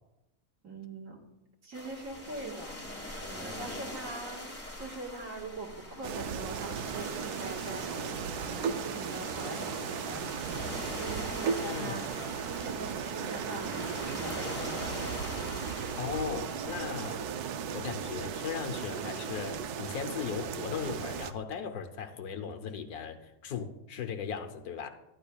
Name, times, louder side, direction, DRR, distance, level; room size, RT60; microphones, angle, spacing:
voice 1, 0.6-1.2 1.6-15.4, right 2 dB, 55° right, 1.9 m, -43 dB
sound 1, 1.7-16.8, left 1 dB, 10° left, 1.2 m, -43 dB
sound 2, 6.0-21.3, right 7 dB, 80° right, 1.1 m, -36 dB
voice 2, 11.6-12.0 16.0-17.2 17.7-24.9, left 7 dB, 75° left, 1.3 m, -37 dB
13.0 x 10.0 x 2.3 m
omnidirectional pair, 1.7 m